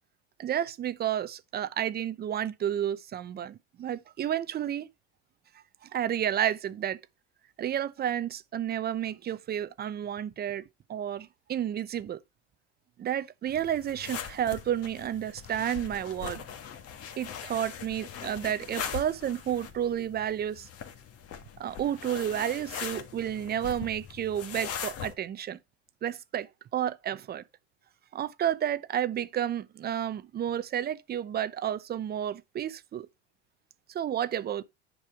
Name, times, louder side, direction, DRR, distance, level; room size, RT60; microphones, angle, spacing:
voice 1, 0.4-4.9 5.8-7.0 7.6-10.6 10.9-12.2 13.0-16.4 17.2-20.7 21.6-25.6 26.0-27.4 28.1-33.1 33.9-34.6, right 10 dB, 25° right, 0.7 m, -31 dB
sound 1, 13.5-25.1, left 7 dB, 40° left, 1.6 m, -41 dB
10.0 x 5.5 x 4.5 m
supercardioid pair, 110°, 36 cm